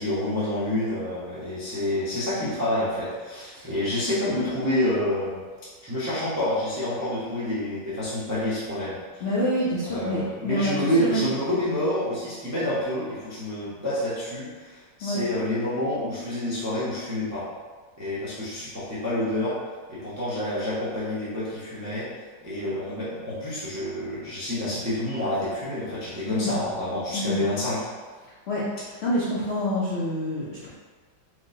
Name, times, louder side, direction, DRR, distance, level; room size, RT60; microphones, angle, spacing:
voice 1, 0.0-5.4 5.8-9.2 9.9-17.5 18.0-19.6 19.9-22.1 22.4-27.8, left 1 dB, 25° right, -11 dB, 0.3 m, -28 dB
voice 2, 9.2-11.2 15.0-15.2 26.3-26.5 27.1-27.4 28.5-30.7, equal, 80° left, -8 dB, 0.5 m, -27 dB
4.6 x 2.2 x 2.7 m, 1.4 s
omnidirectional pair, 2.0 m